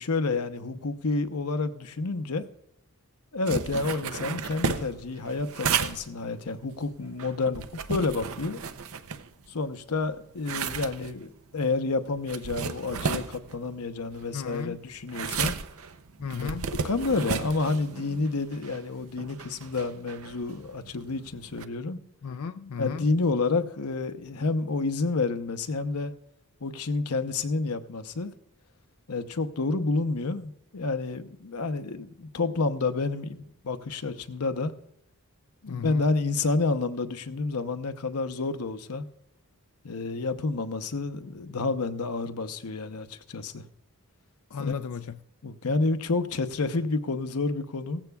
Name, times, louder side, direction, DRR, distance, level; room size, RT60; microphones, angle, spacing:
voice 1, 0.0-2.5 3.3-8.6 9.5-15.5 16.4-16.6 16.8-22.0 22.8-26.1 26.6-28.3 29.1-34.7 35.6-39.1 39.8-43.6 44.6-44.8 45.4-48.0, left 3 dB, 85° left, 0.8 m, -29 dB
sound 1, 3.5-9.7 10.0-21.6, right 6 dB, 70° right, 0.7 m, -34 dB
voice 2, 14.3-14.8 16.2-16.7 22.2-23.1 35.7-36.0 44.5-45.2, left 6 dB, 70° left, 0.4 m, -34 dB
17.0 x 15.0 x 2.3 m
head